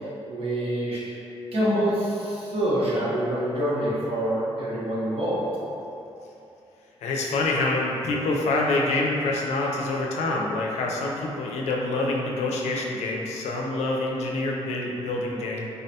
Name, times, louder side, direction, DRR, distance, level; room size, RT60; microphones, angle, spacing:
voice 1, 0.3-1.2 1.5-5.5, right 1 dB, 60° right, -7 dB, 0.9 m, -26 dB
voice 2, 7.0-15.7, left 2 dB, 90° left, -1 dB, 0.4 m, -26 dB
3.6 x 2.2 x 2.7 m, 2.9 s
cardioid pair, 100°, 11 cm